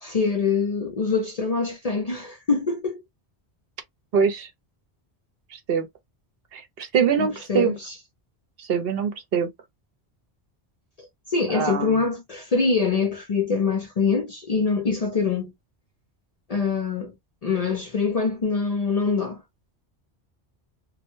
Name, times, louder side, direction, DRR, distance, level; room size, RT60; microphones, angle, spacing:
voice 1, 0.0-3.0 7.2-7.9 11.3-15.5 16.5-17.1 17.4-19.4, left 4 dB, 45° left, 0.5 m, -24 dB
voice 2, 4.1-4.5 5.5-5.9 6.5-7.7 8.6-9.5 11.5-12.0, right 6 dB, 65° right, 0.8 m, -24 dB
2.2 x 2.1 x 3.0 m
omnidirectional pair, 1.1 m